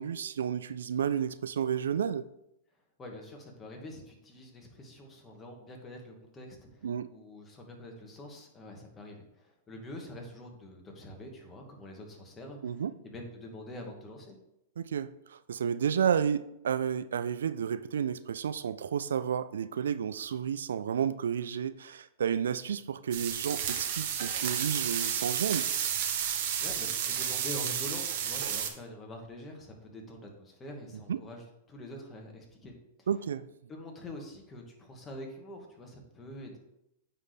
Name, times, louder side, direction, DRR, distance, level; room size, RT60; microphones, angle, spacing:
voice 1, 0.0-2.3 6.8-7.1 12.6-12.9 14.8-25.7 31.1-31.2 33.1-33.5, right 8 dB, 80° right, 14 dB, 0.3 m, -31 dB
voice 2, 3.0-14.4 26.6-32.7 33.0-33.1 33.7-36.6, left 1 dB, 20° left, 1 dB, 1.7 m, -45 dB
sound 1, 23.1-28.7, right 9 dB, 60° right, 1.0 m, -32 dB
9.1 x 4.1 x 3.4 m, 0.83 s
hypercardioid pair, 120°, 0 cm